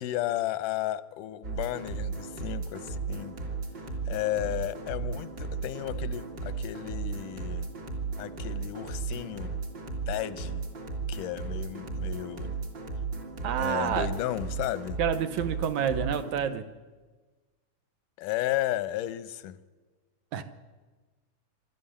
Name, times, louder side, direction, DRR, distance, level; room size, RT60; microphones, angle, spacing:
voice 1, 0.0-3.4 4.1-7.7 8.2-9.6 10.1-10.6 11.1-12.5 13.6-15.0 18.2-19.6, left 14 dB, 90° left, 14 dB, 2.4 m, -33 dB
sound 1, 1.4-16.4, right 4 dB, 35° right, 2.8 m, -35 dB
voice 2, 13.4-14.1 15.0-16.6 20.3-20.4, right 8 dB, 70° right, 10 dB, 2.2 m, -28 dB
23.0 x 13.0 x 9.9 m, 1.3 s
omnidirectional pair, 3.6 m